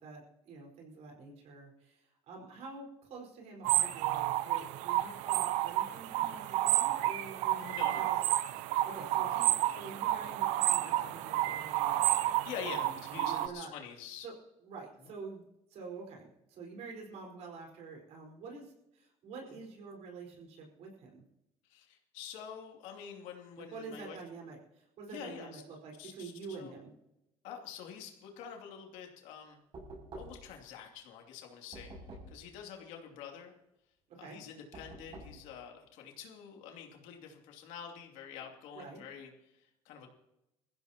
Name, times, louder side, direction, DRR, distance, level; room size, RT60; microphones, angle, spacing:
voice 1, 0.0-8.1 8.5-12.0 12.6-13.7 14.2-14.3 14.6-21.2 23.6-26.9 34.1-34.4 38.7-39.0, right 4 dB, 65° right, 0 dB, 4.7 m, -47 dB
sound 1, 3.6-13.5, right 14 dB, 85° right, 0.7 m, -31 dB
voice 2, 7.6-8.1 9.1-9.2 12.4-14.3 19.5-19.6 21.7-24.2 25.1-25.6 26.0-26.8 27.4-29.6 30.2-31.9 32.3-33.5 34.2-40.1, left 8 dB, 80° left, 2 dB, 2.8 m, -47 dB
Knock, 29.7-30.6 31.7-32.5 34.7-35.5, right 1 dB, 45° right, 6.8 m, -48 dB
21.5 x 15.0 x 2.9 m, 0.88 s
cardioid pair, 105°, 12 cm